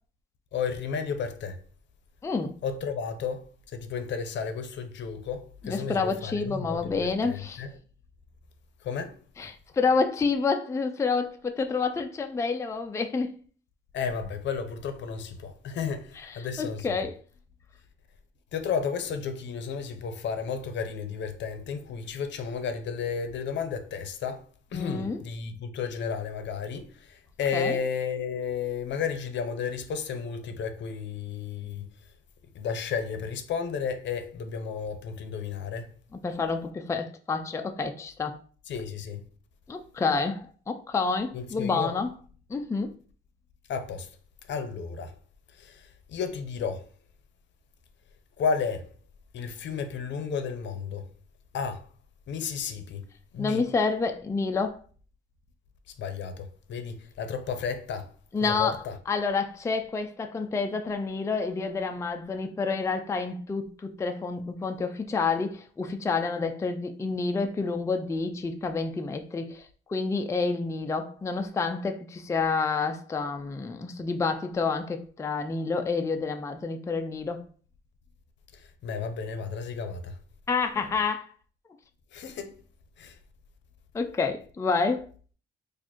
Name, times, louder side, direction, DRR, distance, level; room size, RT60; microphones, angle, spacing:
voice 1, 0.5-1.6 2.6-7.7 8.8-9.1 13.9-16.9 18.5-24.4 24.7-31.8 32.5-35.9 38.7-39.2 41.3-41.9 43.7-44.1 44.5-45.1 45.6-46.8 48.4-48.9 49.3-51.0 51.5-51.8 52.3-53.0 53.3-53.6 56.0-58.1 58.4-58.9 78.5-80.2 82.1-82.5 83.0-83.2, left 6 dB, 65° left, 0.6 m, -33 dB
voice 2, 2.2-2.6 5.6-7.6 9.4-13.3 16.3-17.2 24.7-25.2 27.5-27.8 36.1-38.4 39.7-42.1 42.5-42.9 53.4-54.8 58.3-69.6 69.9-77.4 80.5-81.3 83.9-85.1, left 4 dB, 15° left, 0.4 m, -29 dB
4.1 x 2.5 x 2.9 m
cardioid pair, 90°, 20 cm